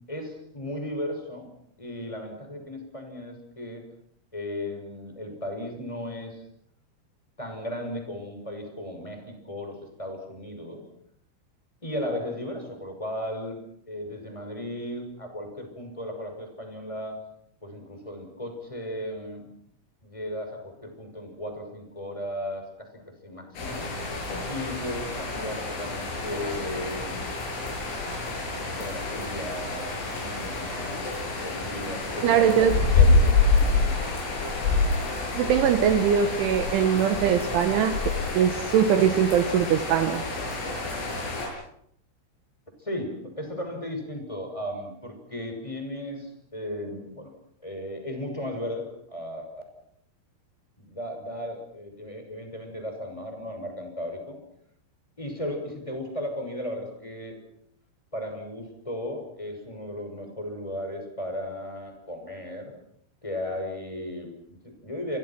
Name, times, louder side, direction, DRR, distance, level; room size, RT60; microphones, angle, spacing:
voice 1, 0.1-1.5 1.8-3.8 4.3-6.4 7.4-10.8 11.8-13.6 13.9-17.2 17.6-19.5 20.0-23.9 24.5-27.2 28.7-31.0 31.4-34.0 42.8-47.3 47.6-49.5 50.8-54.4 55.2-57.3 58.1-62.7 63.2-65.2, left 1 dB, 5° left, 4 dB, 5.9 m, -35 dB
sound 1, 23.6-41.5, left 3 dB, 90° left, 10.0 m, -27 dB
voice 2, 32.2-32.8 35.4-38.0 38.3-40.2, right 8 dB, 75° right, 8 dB, 3.6 m, -22 dB
28.5 x 25.0 x 6.1 m, 0.71 s
omnidirectional pair, 5.9 m